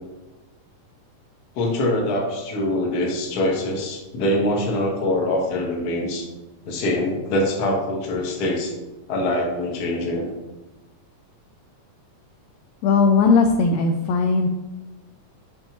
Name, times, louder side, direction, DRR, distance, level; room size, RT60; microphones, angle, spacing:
voice 1, 1.5-6.3 6.6-8.7 9.1-10.3, left 1 dB, 55° left, -1 dB, 1.1 m, -24 dB
voice 2, 12.8-14.5, left 4 dB, 80° left, 4 dB, 1.6 m, -18 dB
7.2 x 5.3 x 3.0 m, 1.1 s
omnidirectional pair, 3.6 m